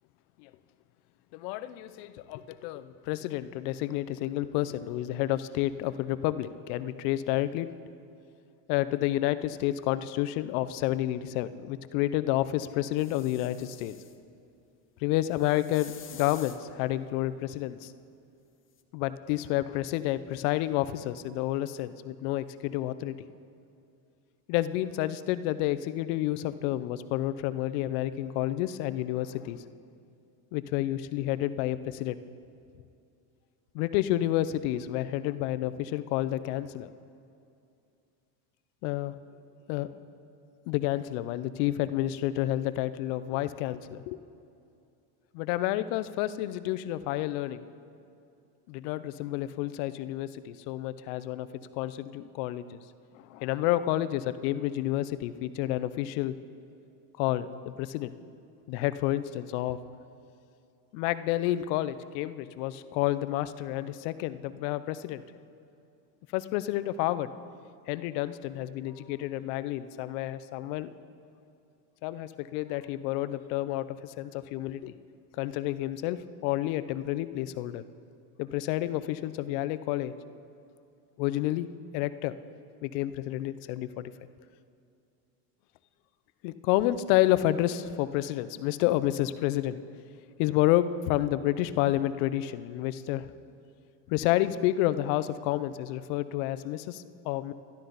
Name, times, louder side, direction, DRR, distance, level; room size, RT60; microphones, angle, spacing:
voice 1, 1.3-7.7 8.7-13.9 15.0-17.9 18.9-23.2 24.5-29.6 30.5-32.2 33.7-36.9 38.8-39.1 39.7-39.9 40.7-44.2 45.3-47.6 48.7-51.5 51.7-52.8 53.3-56.3 57.2-58.1 58.7-59.8 60.9-65.2 66.3-67.3 67.9-70.9 72.0-74.9 75.4-77.8 78.4-80.1 81.2-81.7 81.9-82.3 82.8-84.1 86.4-89.8 90.4-93.3 94.1-97.5, left 14 dB, 80° left, 14 dB, 0.6 m, -30 dB
sound 1, 13.0-14.2 15.3-16.6 18.8-18.9, left 8 dB, 25° left, 0.7 m, -49 dB
12.0 x 12.0 x 4.0 m, 2.5 s
supercardioid pair, 105°, 46 cm